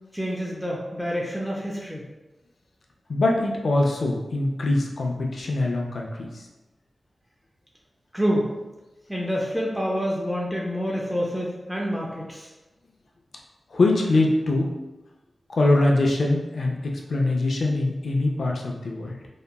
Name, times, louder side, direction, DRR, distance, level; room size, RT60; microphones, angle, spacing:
voice 1, 0.1-2.1 8.1-8.5 9.1-12.5, equal, ahead, -4 dB, 0.4 m, -27 dB
voice 2, 3.1-6.5 13.7-14.7 15.5-19.2, left 2 dB, 75° left, 0 dB, 0.4 m, -23 dB
2.8 x 2.2 x 2.2 m, 1.1 s
wide cardioid pair, 100°, 0 cm